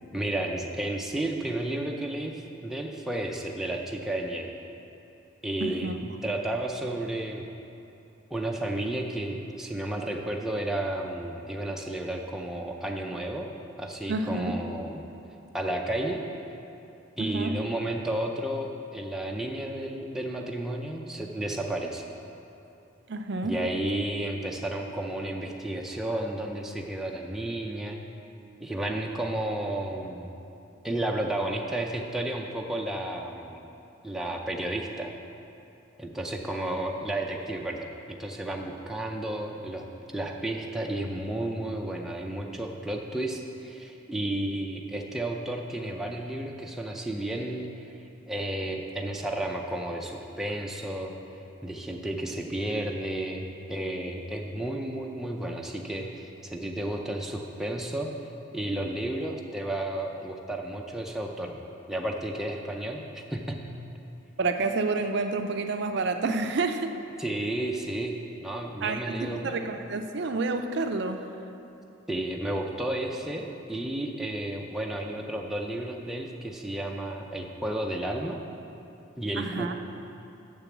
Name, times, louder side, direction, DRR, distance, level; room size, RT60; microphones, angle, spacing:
voice 1, 0.1-4.5 5.4-7.5 8.3-13.5 13.8-15.0 15.5-16.2 17.2-22.1 23.4-28.0 28.6-30.3 30.8-33.6 34.0-35.1 36.0-39.8 40.1-48.0 48.3-51.1 51.6-58.1 58.5-61.6 61.9-63.6 67.2-69.5 72.1-78.4 79.2-79.7, right 1 dB, ahead, 0 dB, 0.5 m, -32 dB
voice 2, 5.6-6.0 14.1-14.6 17.2-17.6 23.1-23.6 64.4-67.0 68.8-71.2 79.4-79.7, right 3 dB, 55° right, 7 dB, 0.4 m, -29 dB
6.9 x 6.7 x 7.2 m, 2.9 s
head